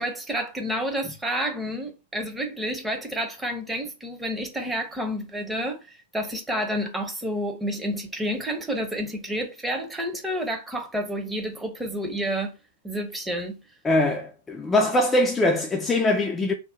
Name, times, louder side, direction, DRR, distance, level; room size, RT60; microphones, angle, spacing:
voice 1, 0.0-12.5 12.8-13.6, equal, 10° right, 0.8 m, -30 dB
voice 2, 13.8-16.5, left 1 dB, 15° left, 0.4 m, -22 dB
2.7 x 2.1 x 3.4 m
hypercardioid pair, 115°, 0 cm